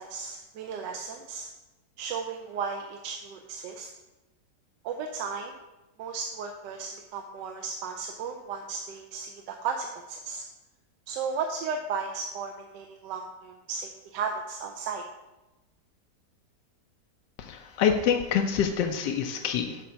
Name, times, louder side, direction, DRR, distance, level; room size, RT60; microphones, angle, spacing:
voice 1, 0.0-1.5 2.0-3.9 4.8-5.5 6.0-10.4 11.1-15.0, right 5 dB, 85° right, 3 dB, 1.2 m, -35 dB
voice 2, 17.4-19.8, left 7 dB, 80° left, 4 dB, 1.2 m, -26 dB
6.6 x 4.1 x 5.6 m, 1.0 s
omnidirectional pair, 1.9 m